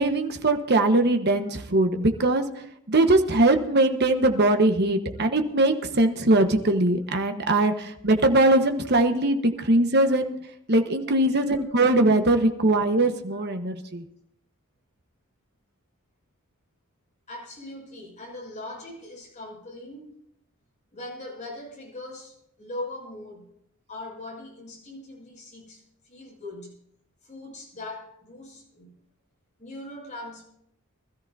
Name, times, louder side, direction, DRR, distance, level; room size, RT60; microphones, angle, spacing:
voice 1, 0.0-10.3 10.7-14.0, right 2 dB, 50° right, 6 dB, 1.2 m, -21 dB
voice 2, 17.3-20.1 20.9-23.5 23.9-26.8 27.2-29.0 29.6-30.4, left 2 dB, 35° left, -2 dB, 6.3 m, -40 dB
24.0 x 13.5 x 2.7 m, 0.73 s
head